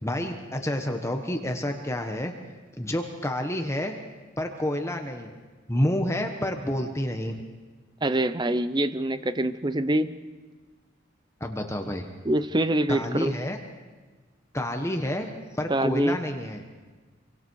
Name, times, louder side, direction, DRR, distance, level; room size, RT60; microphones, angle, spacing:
voice 1, 0.0-2.3 2.8-3.9 4.4-5.3 5.7-7.4 11.4-12.1 12.9-13.6 14.5-16.6, left 1 dB, 15° left, 4 dB, 1.2 m, -29 dB
voice 2, 8.0-10.2 12.2-13.4 15.7-16.2, right 1 dB, 20° right, 12 dB, 0.7 m, -25 dB
26.5 x 24.0 x 4.7 m, 1.3 s
head